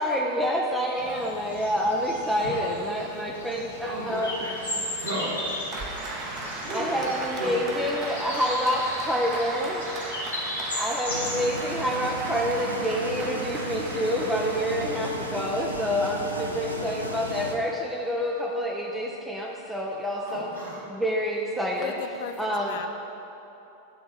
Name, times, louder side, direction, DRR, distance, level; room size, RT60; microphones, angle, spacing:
voice 1, 0.0-4.3 6.7-9.9 10.7-20.5 20.9-22.0 22.4-22.9, equal, 5° right, -3 dB, 0.6 m, -27 dB
sound 1, 1.0-11.3, left 1 dB, 75° left, 1.8 m, -36 dB
voice 2, 3.8-8.0 20.3-20.8, right 1 dB, 65° right, -5 dB, 1.8 m, -35 dB
Applause, 5.7-15.8, right 2 dB, 35° right, 1.0 m, -37 dB
sound 2, 11.1-17.5, right 1 dB, 85° right, 0.7 m, -35 dB
voice 3, 21.8-22.9, left 7 dB, 55° left, 7 dB, 0.5 m, -36 dB
10.0 x 3.6 x 6.3 m, 2.9 s
figure-of-eight pair, 90°, 0 cm